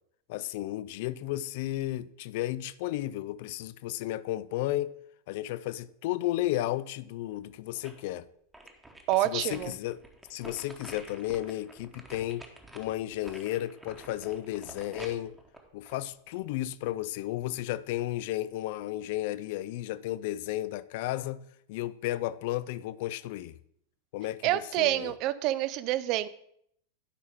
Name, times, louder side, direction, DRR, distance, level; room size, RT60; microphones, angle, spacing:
voice 1, 0.3-4.9 5.3-8.3 9.2-10.0 10.3-12.5 12.7-15.4 15.7-21.4 21.7-23.5 24.1-25.1, left 15 dB, 50° left, 0.3 m, -33 dB
sound 1, 7.3-8.1 8.5-16.6 17.0-17.1, right 1 dB, 5° right, 1.1 m, -49 dB
voice 2, 9.1-9.7 24.4-26.3, right 14 dB, 40° right, 0.4 m, -27 dB
11.0 x 5.3 x 3.6 m
figure-of-eight pair, 90°, 0 cm